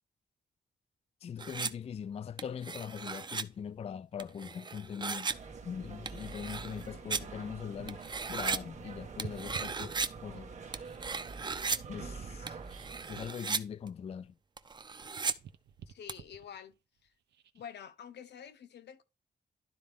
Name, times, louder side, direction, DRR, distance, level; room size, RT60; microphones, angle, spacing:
voice 1, 1.2-5.3 5.6-8.0 8.3-10.5 11.9-12.6 13.1-14.4, left 7 dB, 35° left, 0.4 m, -41 dB
sound 1, 1.4-1.7 2.4-3.4 4.2-5.3 6.1-7.2 7.9-8.6 9.2-10.1 10.7-11.8 12.5-13.6 13.9-14.0 14.6-15.3 16.1-16.2, right 5 dB, 25° right, 0.5 m, -36 dB
sound 2, 5.3-13.3, right 4 dB, 45° right, 1.5 m, -46 dB
sound 3, 5.7-8.1 8.4-10.5 11.1-14.6 14.9-17.7 18.3-18.5, right 9 dB, 90° right, 0.9 m, -53 dB
voice 2, 15.9-17.1 17.5-19.0, left 8 dB, 85° left, 1.0 m, -48 dB
12.0 x 4.2 x 3.5 m
wide cardioid pair, 130°, 17 cm